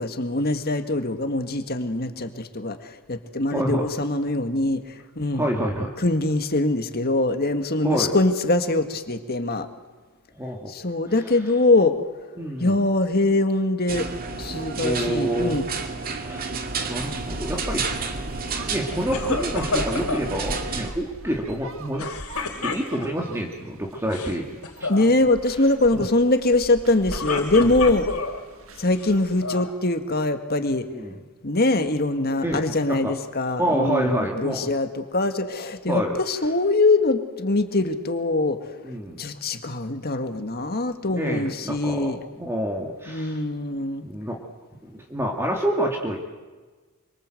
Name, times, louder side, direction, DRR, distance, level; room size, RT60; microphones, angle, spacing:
voice 1, 0.0-5.5 6.0-9.7 10.7-12.0 12.6-14.1 14.4-15.7 24.9-28.1 28.8-30.9 31.4-38.8 39.2-42.2 43.1-44.1, left 2 dB, 45° left, 8 dB, 1.9 m, -23 dB
voice 2, 3.5-3.9 5.3-6.0 7.8-8.2 10.4-10.7 12.4-12.8 14.8-15.6 16.1-16.5 16.8-17.9 18.7-22.1 22.6-24.5 25.9-26.1 27.5-27.7 30.9-31.1 32.4-33.1 33.6-34.7 35.9-36.2 38.8-39.2 41.1-43.4 44.0-44.4 44.8-46.2, right 1 dB, 10° right, 0 dB, 2.2 m, -27 dB
sound 1, 13.9-20.9, right 4 dB, 40° right, 2.3 m, -31 dB
sound 2, 16.9-29.4, right 1 dB, 65° right, 1.8 m, -40 dB
sound 3, 19.1-20.3 22.0-23.3 24.0-24.4 24.6-25.0 26.9-28.4 29.0-29.7, left 4 dB, 80° left, 3.3 m, -29 dB
26.5 x 25.0 x 7.9 m, 1.3 s
head